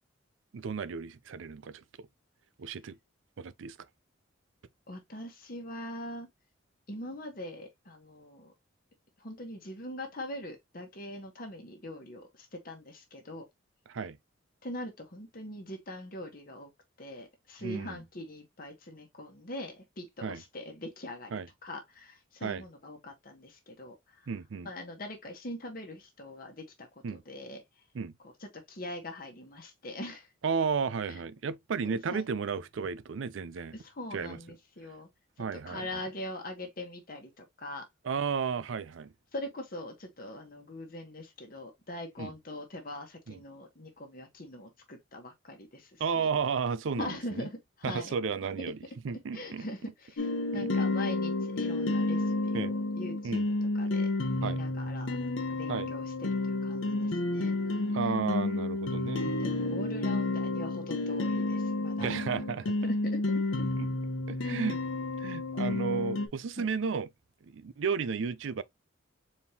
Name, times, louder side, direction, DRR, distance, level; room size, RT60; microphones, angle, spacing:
voice 1, 0.5-2.1 2.6-3.0 3.4-3.8 13.9-14.2 17.6-18.0 20.2-20.4 21.3-21.5 22.4-22.6 24.3-24.7 27.0-27.2 27.9-28.1 30.4-33.8 34.1-34.4 35.4-36.0 38.0-39.1 42.2-42.3 43.3-43.4 46.0-47.5 47.8-48.8 49.0-49.6 50.5-50.9 52.5-52.7 53.2-53.5 54.4-54.6 55.7-55.9 57.9-59.3 62.0-62.8 64.3-64.8 65.2-67.1 67.5-68.6, right 5 dB, 70° right, 0.4 m, -33 dB
voice 2, 4.9-6.3 6.9-8.5 9.2-13.4 14.6-16.7 17.0-24.0 24.6-27.6 28.5-30.3 31.1-31.2 31.8-32.2 33.7-35.1 35.4-37.9 39.3-46.3 47.0-48.1 49.3-53.4 53.7-54.1 54.4-55.2 55.5-57.5 59.4-62.1 62.8-63.4 66.6-66.7, left 1 dB, 45° left, 1.1 m, -42 dB
sound 1, 50.2-66.3, left 2 dB, 80° left, 0.8 m, -31 dB
4.3 x 3.5 x 2.8 m
head